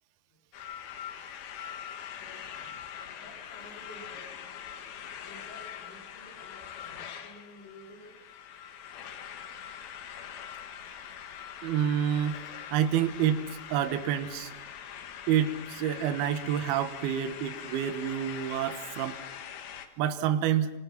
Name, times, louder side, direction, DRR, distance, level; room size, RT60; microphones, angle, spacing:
sound 1, 0.5-19.9, left 9 dB, 65° left, 3.2 m, -43 dB
voice 1, 2.2-2.9 3.2-4.5 5.2-8.2, left 1 dB, 85° left, -2 dB, 6.0 m, -52 dB
voice 2, 11.6-12.4 12.7-14.5 15.3-19.2 20.0-20.7, right 9 dB, 70° right, 10 dB, 2.8 m, -28 dB
25.5 x 25.5 x 5.9 m, 1.1 s
omnidirectional pair, 5.0 m